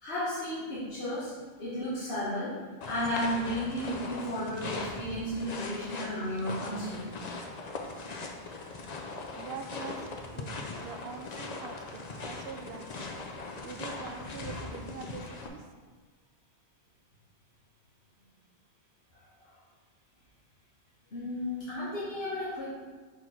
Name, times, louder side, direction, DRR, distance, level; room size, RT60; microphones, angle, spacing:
voice 1, 0.0-1.3 1.6-2.6 2.8-7.1 19.4-19.5 21.1-22.7, equal, 65° left, -10 dB, 1.6 m, -33 dB
sound 1, 2.8-15.5, left 3 dB, 45° left, 0.7 m, -40 dB
voice 2, 9.3-10.1 10.3-13.1 13.6-15.6, right 6 dB, 65° right, 6 dB, 0.8 m, -44 dB
5.9 x 4.6 x 4.1 m, 1.4 s
omnidirectional pair, 1.1 m